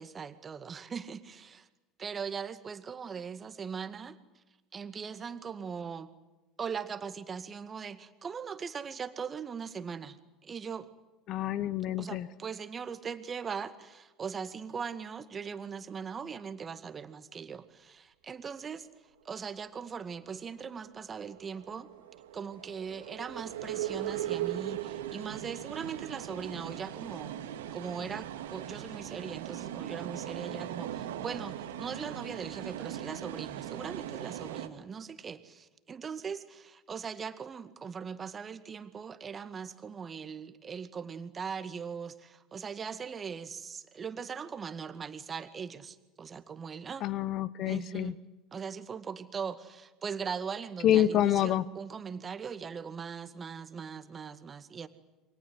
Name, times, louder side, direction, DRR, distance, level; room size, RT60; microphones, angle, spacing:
voice 1, 0.0-1.7 2.0-4.2 4.7-6.1 6.6-10.2 10.4-10.9 12.0-18.9 19.2-21.9 22.3-47.1 47.7-48.2 48.5-54.9, right 6 dB, 30° right, 10 dB, 2.1 m, -40 dB
voice 2, 11.3-12.3 47.0-48.1 50.8-51.6, left 11 dB, 50° left, 20 dB, 0.9 m, -27 dB
sound 1, 20.6-34.7, right 12 dB, 70° right, 2.1 m, -39 dB
28.5 x 24.5 x 8.0 m, 1.1 s
figure-of-eight pair, 70°, 0 cm